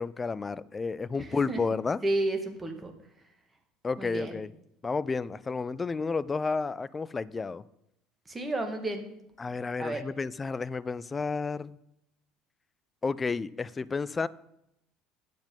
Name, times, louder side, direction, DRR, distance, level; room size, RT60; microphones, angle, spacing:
voice 1, 0.0-2.0 3.8-4.5 4.8-7.6 9.4-11.8 13.0-14.3, left 4 dB, 20° left, 0.4 m, -31 dB
voice 2, 1.3-1.6 2.0-2.9 4.0-4.3 8.3-9.1 9.8-10.0, right 2 dB, 20° right, 1.8 m, -31 dB
9.3 x 7.0 x 5.4 m
figure-of-eight pair, 60°, 0 cm